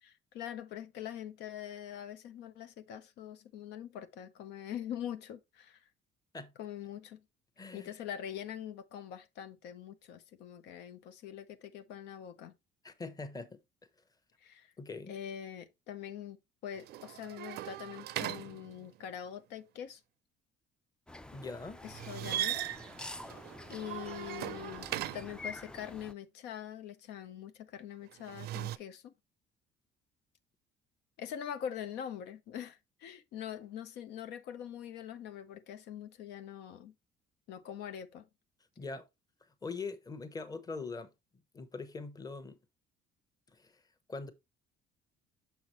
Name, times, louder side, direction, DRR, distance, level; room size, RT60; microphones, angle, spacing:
voice 1, 0.0-5.8 6.6-7.2 7.7-12.5 14.4-14.7 15.1-16.4 16.6-20.0 21.8-22.6 23.7-24.9 25.1-29.1 31.2-36.9 37.5-38.3, left 9 dB, 85° left, 0.7 m, -43 dB
voice 2, 7.6-7.9 12.8-13.6 14.8-15.1 21.3-21.8 38.8-39.1 39.6-41.1 41.5-42.6 43.5-43.8 44.1-44.3, left 4 dB, 20° left, 0.9 m, -42 dB
sound 1, 16.7-19.1 21.9-25.5 28.1-28.8, right 13 dB, 70° right, 0.5 m, -39 dB
sound 2, 21.1-26.1, left 2 dB, 5° left, 0.3 m, -47 dB
6.2 x 5.7 x 3.0 m
cardioid pair, 110°, 17 cm